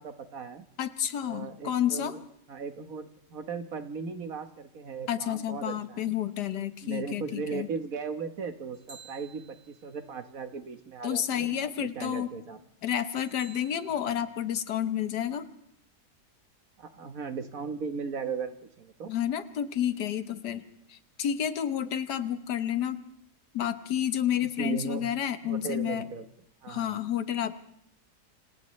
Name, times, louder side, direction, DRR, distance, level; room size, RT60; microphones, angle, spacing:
voice 1, 0.0-0.6 1.2-2.2 2.5-6.2 6.8-12.6 16.8-19.1 24.4-25.1 25.4-26.2 26.6-27.0, right 5 dB, 60° right, 8 dB, 1.6 m, -37 dB
voice 2, 0.8-2.1 5.1-7.7 11.0-12.3 12.8-15.5 19.1-20.6 20.9-23.0 23.5-26.0 26.7-27.5, left 10 dB, 80° left, 11 dB, 1.6 m, -30 dB
sound 1, 8.7-10.1 13.2-13.9, right 5 dB, 45° right, 2.0 m, -52 dB
30.0 x 27.0 x 3.2 m, 0.73 s
omnidirectional pair, 1.7 m